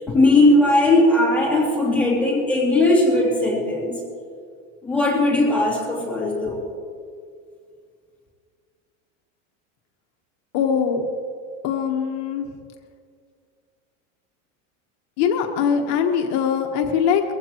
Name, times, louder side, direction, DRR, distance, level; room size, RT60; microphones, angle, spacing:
voice 1, 0.1-3.9 4.8-6.6, left 2 dB, 5° left, -6 dB, 2.7 m, -18 dB
voice 2, 10.5-11.1 11.6-12.4 15.2-17.2, left 7 dB, 45° left, 3 dB, 1.3 m, -22 dB
22.5 x 15.5 x 3.0 m, 2.2 s
supercardioid pair, 155°, 37 cm